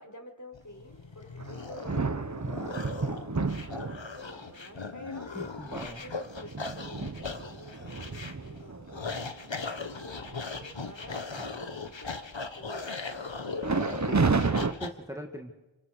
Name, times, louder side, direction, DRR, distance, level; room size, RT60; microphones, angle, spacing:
voice 1, 0.0-5.3 5.7-12.2 12.5-13.6, left 1 dB, 35° left, 4 dB, 4.3 m, -49 dB
sound 1, 0.5-14.9, left 4 dB, 65° left, 1.6 m, -39 dB
sound 2, 1.4-4.4 5.1-5.2 5.6-9.3 9.8-9.9 10.2-10.7 11.0-11.8 13.6-14.7, right 4 dB, 35° right, 1.0 m, -31 dB
voice 2, 5.4-6.0 14.0-15.5, equal, 5° right, 3 dB, 2.0 m, -40 dB
27.5 x 25.0 x 6.6 m, 1.1 s
wide cardioid pair, 40°, 49 cm